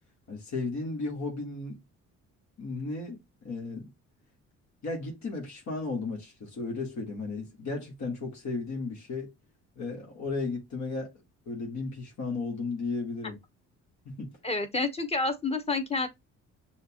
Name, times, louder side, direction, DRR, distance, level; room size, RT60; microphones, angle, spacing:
voice 1, 0.3-1.8 2.6-3.9 4.8-9.3 9.8-11.1 11.5-13.4 14.1-14.3, left 3 dB, 65° left, 1.8 m, -34 dB
voice 2, 14.4-16.1, left 3 dB, 20° left, 1.1 m, -29 dB
6.3 x 2.5 x 3.0 m
cardioid pair, 90°, 30 cm